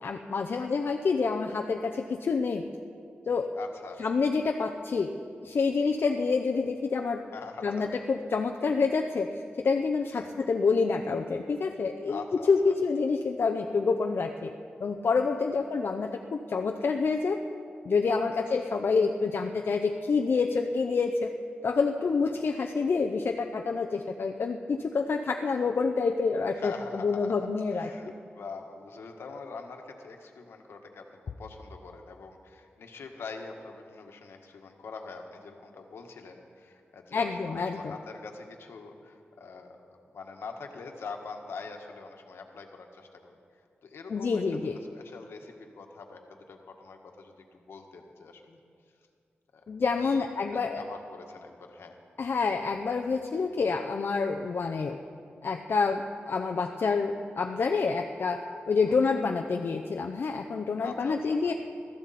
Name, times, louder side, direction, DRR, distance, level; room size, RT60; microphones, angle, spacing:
voice 1, 0.0-2.6 3.3-3.5 4.0-5.1 5.4-7.2 7.6-12.2 12.5-14.5 14.8-17.4 17.8-21.3 21.6-27.9 37.1-37.9 44.1-44.8 49.7-50.8 52.2-55.0 55.4-61.5, left 4 dB, 65° left, 3 dB, 0.7 m, -27 dB
voice 2, 3.6-4.0 7.3-7.9 10.1-10.3 12.1-12.7 15.5-15.6 18.3-18.5 22.3-22.4 26.5-43.4 43.8-48.6 49.5-49.6 50.0-52.0 58.9-59.0 60.8-61.5, left 4 dB, 90° left, 3 dB, 1.5 m, -44 dB
22.0 x 14.0 x 4.3 m, 2.3 s
cardioid pair, 75°, 4 cm